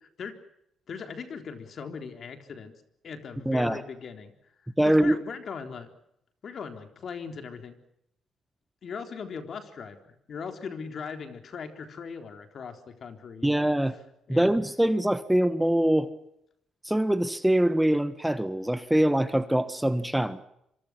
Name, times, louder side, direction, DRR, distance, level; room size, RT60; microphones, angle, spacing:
voice 1, 0.9-2.7 3.0-4.3 4.9-5.9 6.4-7.8 8.8-13.7 14.3-14.6, left 6 dB, 55° left, 3.8 m, -39 dB
voice 2, 3.4-3.8 4.8-5.2 13.4-13.9 14.3-16.1 16.8-20.4, right 1 dB, 5° right, 1.4 m, -23 dB
26.0 x 25.0 x 6.1 m
cardioid pair, 90°, 0 cm